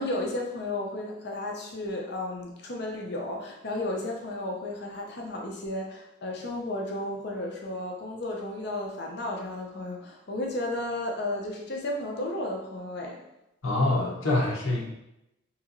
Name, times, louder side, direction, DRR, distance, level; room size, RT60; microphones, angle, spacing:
voice 1, 0.0-13.2, left 1 dB, 55° left, 0 dB, 0.6 m, -33 dB
voice 2, 13.6-14.9, left 2 dB, 85° left, -4 dB, 0.8 m, -25 dB
3.0 x 2.8 x 2.6 m, 0.88 s
head